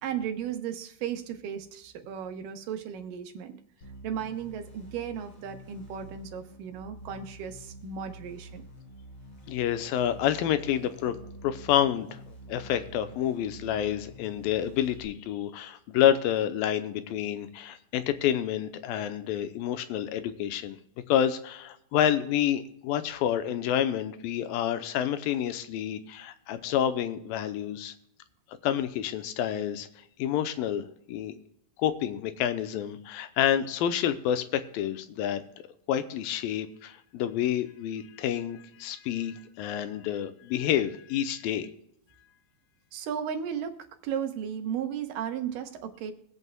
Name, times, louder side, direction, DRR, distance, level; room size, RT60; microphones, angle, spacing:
voice 1, 0.0-3.6 4.0-8.6 42.9-43.8 44.0-46.1, right 8 dB, 75° right, 6 dB, 2.6 m, -35 dB
sound 1, 3.8-15.1, equal, 40° left, 5.8 m, -48 dB
voice 2, 9.5-11.2 11.4-12.2 12.5-20.8 21.1-27.9 28.6-29.9 30.2-31.3 31.8-35.4 35.9-41.7, left 10 dB, 90° left, 11 dB, 2.5 m, -28 dB
23.0 x 8.2 x 2.3 m, 0.75 s
omnidirectional pair, 4.1 m